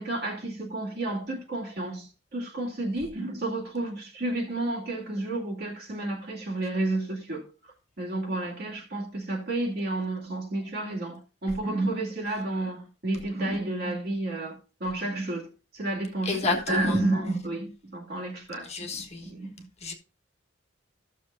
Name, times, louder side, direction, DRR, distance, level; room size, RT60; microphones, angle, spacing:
voice 1, 0.0-7.4 8.0-14.5 14.8-15.5 15.7-18.7 19.2-19.5, right 2 dB, 55° right, 2.3 m, -31 dB
voice 2, 16.2-17.0 18.6-19.3 19.8-19.9, left 4 dB, 35° left, 1.4 m, -30 dB
15.5 x 6.6 x 2.6 m
head